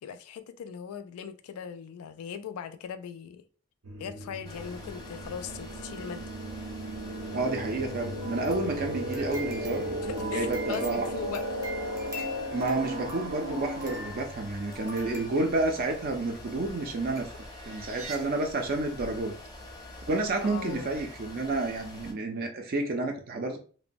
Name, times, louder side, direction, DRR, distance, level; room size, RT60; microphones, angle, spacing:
voice 1, 0.0-3.4 4.0-6.3 10.0-11.7 20.4-20.9, left 7 dB, 85° left, 0.3 m, -39 dB
sound 1, 3.8-14.3 17.6-18.2 20.7-21.1, equal, 85° right, 0.6 m, -36 dB
sound 2, 4.4-22.1, left 1 dB, 20° left, 0.5 m, -46 dB
voice 2, 7.3-11.1 12.5-19.3 20.1-23.6, right 2 dB, 45° right, 0.4 m, -30 dB
sound 3, 8.2-16.0 16.7-16.8 17.2-17.3 17.7-17.8, right 2 dB, 15° right, 0.7 m, -44 dB
2.9 x 2.0 x 2.5 m
head